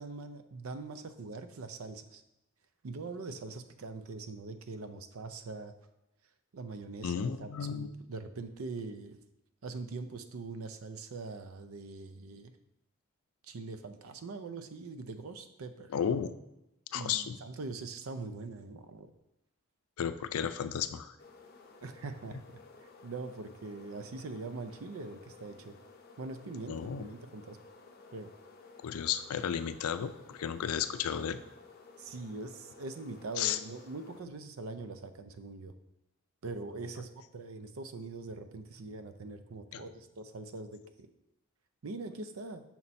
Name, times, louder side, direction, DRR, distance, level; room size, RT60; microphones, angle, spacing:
voice 1, 0.0-2.2 2.8-5.7 6.5-9.2 9.6-12.5 13.5-15.9 16.9-19.1 21.8-22.6 23.0-25.7 26.2-27.6 28.1-28.3 32.0-35.7 36.4-41.1 41.8-42.6, right 3 dB, 75° right, 9 dB, 0.5 m, -42 dB
voice 2, 7.0-7.9 15.9-16.3 16.9-17.4 20.0-21.2 22.3-22.4 26.7-27.1 28.8-31.4 33.4-33.6 39.7-39.8, left 8 dB, 90° left, 11 dB, 0.4 m, -33 dB
sound 1, 21.2-34.2, left 4 dB, 45° left, 0.6 m, -55 dB
5.8 x 4.1 x 4.3 m, 0.89 s
head